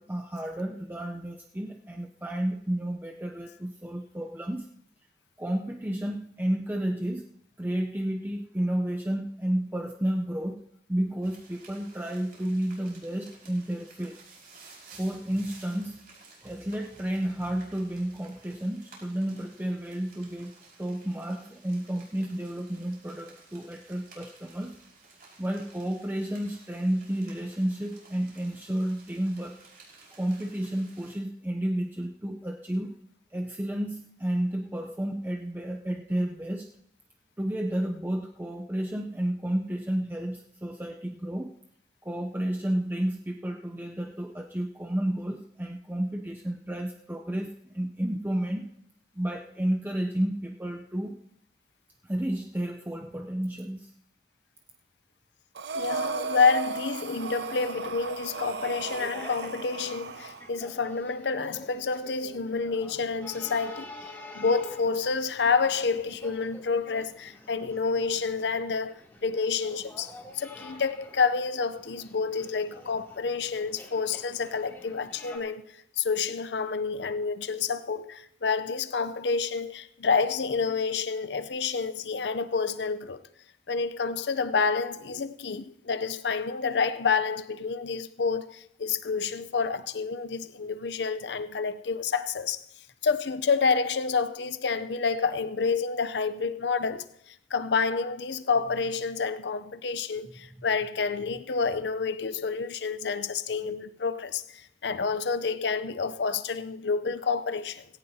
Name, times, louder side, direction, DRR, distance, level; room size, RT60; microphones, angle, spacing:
voice 1, 0.0-4.7 5.4-7.2 7.6-10.6 10.9-14.2 14.9-16.0 16.4-20.5 20.8-24.7 25.4-29.6 30.2-32.9 33.3-36.7 37.4-41.5 42.0-48.7 49.1-51.2 52.1-53.9 103.7-103.8, right 1 dB, 10° right, 0.6 m, -31 dB
sound 1, 11.2-31.2, right 3 dB, 60° right, 5.4 m, -54 dB
Breathing, 55.6-60.5, right 4 dB, 75° right, 0.7 m, -35 dB
voice 2, 55.7-63.9 64.3-83.2 83.7-92.6 93.0-107.8, left 5 dB, 75° left, 0.7 m, -29 dB
sound 2, 57.4-75.4, left 1 dB, 10° left, 2.9 m, -48 dB
18.5 x 17.0 x 2.8 m
head